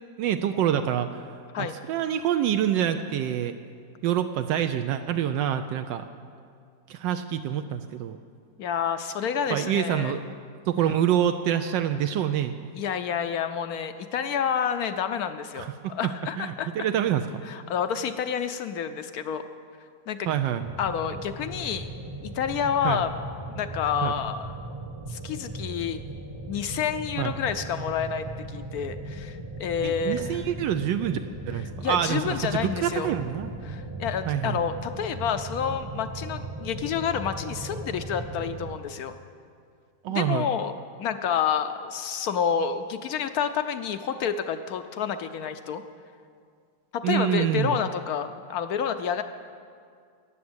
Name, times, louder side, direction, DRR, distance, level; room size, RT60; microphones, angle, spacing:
voice 1, 0.2-1.3 1.6-3.5 4.0-6.0 6.9-8.2 9.5-10.2 10.7-12.6 15.6-16.1 16.4-17.3 20.3-20.6 22.8-23.0 24.0-24.2 27.2-27.3 29.8-31.2 31.5-33.5 34.3-34.6 40.0-40.5 47.0-47.8, right 10 dB, 80° right, 8 dB, 1.2 m, -26 dB
voice 2, 8.6-10.2 12.8-16.9 17.5-19.4 20.1-20.3 20.8-21.9 22.2-23.1 23.5-24.5 25.1-26.0 26.5-30.4 31.8-33.1 33.6-39.1 40.1-40.7 41.0-45.8 46.9-49.2, left 7 dB, 70° left, 10 dB, 0.9 m, -29 dB
sound 1, 20.6-38.8, right 1 dB, 20° right, 0.8 m, -38 dB
14.0 x 9.5 x 7.9 m, 2.2 s
omnidirectional pair, 2.0 m